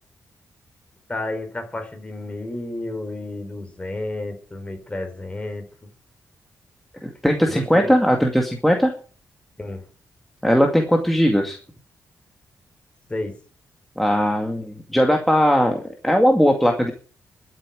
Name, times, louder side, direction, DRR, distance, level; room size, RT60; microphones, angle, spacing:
voice 1, 1.1-5.9 7.5-7.9 9.6-9.9 13.1-13.4, left 2 dB, 20° left, 6 dB, 4.2 m, -31 dB
voice 2, 7.0-8.9 10.4-11.6 14.0-16.9, equal, ahead, 2 dB, 2.2 m, -19 dB
12.5 x 8.8 x 9.1 m, 0.41 s
cardioid pair, 110°, 6 cm